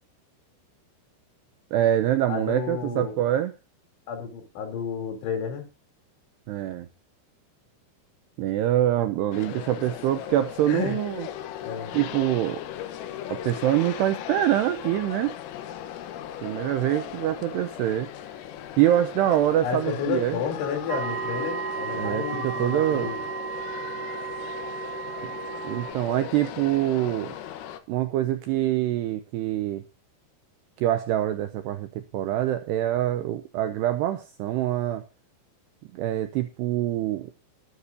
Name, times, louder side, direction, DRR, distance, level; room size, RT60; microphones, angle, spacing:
voice 1, 1.7-3.5 6.5-6.9 8.4-11.3 11.9-12.6 13.3-15.4 16.4-18.1 18.8-20.4 21.9-23.1 25.6-27.3 27.9-29.8 30.8-35.0 35.9-37.3, right 12 dB, 85° right, 9 dB, 2.4 m, -25 dB
voice 2, 2.3-3.2 4.1-5.7 10.7-11.0 11.6-12.0 19.6-23.3, left 7 dB, 65° left, 4 dB, 5.7 m, -31 dB
sound 1, 9.3-27.8, left 10 dB, 85° left, 3.9 m, -38 dB
sound 2, 20.9-25.9, right 6 dB, 40° right, 5.6 m, -33 dB
20.0 x 10.0 x 2.8 m, 0.31 s
omnidirectional pair, 5.8 m